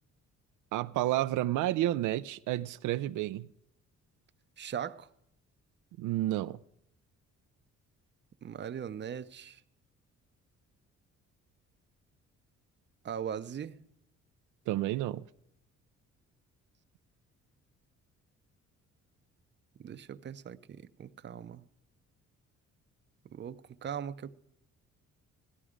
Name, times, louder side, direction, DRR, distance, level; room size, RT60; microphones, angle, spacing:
voice 1, 0.7-3.5 6.0-6.6 14.7-15.2, right 14 dB, 80° right, 0.5 m, -30 dB
voice 2, 4.6-5.1 8.4-9.6 13.0-13.8 19.8-21.6 23.2-24.3, right 8 dB, 35° right, 0.6 m, -40 dB
16.0 x 12.5 x 5.0 m
cardioid pair, 90°, 30 cm